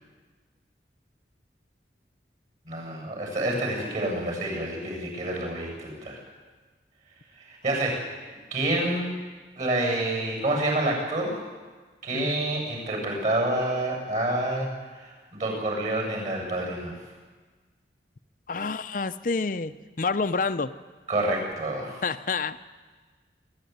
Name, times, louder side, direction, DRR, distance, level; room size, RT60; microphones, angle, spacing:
voice 1, 2.7-6.2 7.4-8.2 8.5-9.1 9.6-11.4 12.0-17.0 21.1-22.0, right 1 dB, 45° right, 1 dB, 7.7 m, -28 dB
voice 2, 18.5-20.7 22.0-22.6, left 4 dB, 50° left, 9 dB, 0.6 m, -28 dB
26.5 x 13.5 x 9.5 m, 1.4 s
head